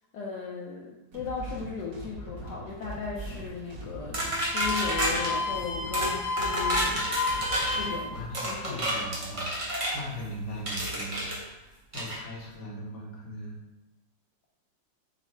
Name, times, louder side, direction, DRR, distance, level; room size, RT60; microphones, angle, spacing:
voice 1, 0.1-7.4 7.7-8.8, left 5 dB, 75° left, -3 dB, 1.1 m, -37 dB
sound 1, 1.1-8.2, equal, 75° right, 1.7 m, -41 dB
sound 2, 4.1-5.3 5.9-6.1 6.4-7.8 8.3-10.0 10.7-11.4 11.9-12.2, right 1 dB, 55° right, 0.3 m, -30 dB
sound 3, 4.5-8.3 8.6-10.0 10.6-11.1, left 4 dB, 90° left, 1.3 m, -32 dB
voice 2, 8.1-13.6, equal, 45° left, -4 dB, 1.2 m, -40 dB
5.6 x 2.0 x 4.3 m, 1.0 s
omnidirectional pair, 2.0 m